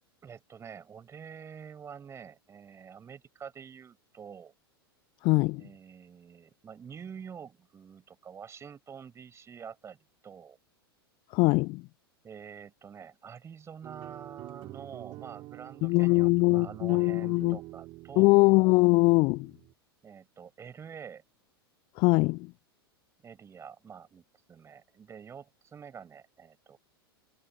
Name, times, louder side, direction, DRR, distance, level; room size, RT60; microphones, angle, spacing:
voice 1, 0.2-4.5 5.5-10.0 10.2-10.6 12.2-18.4 20.0-21.2 23.2-26.8, right 7 dB, 20° right, 5.4 m, -47 dB
voice 2, 5.2-5.6 11.3-11.8 15.8-17.6 18.2-19.5 22.0-22.5, left 25 dB, 35° left, 0.4 m, -22 dB
sound 1, 13.8-19.7, right 19 dB, 40° right, 5.1 m, -46 dB
figure-of-eight pair, 90°, 13 cm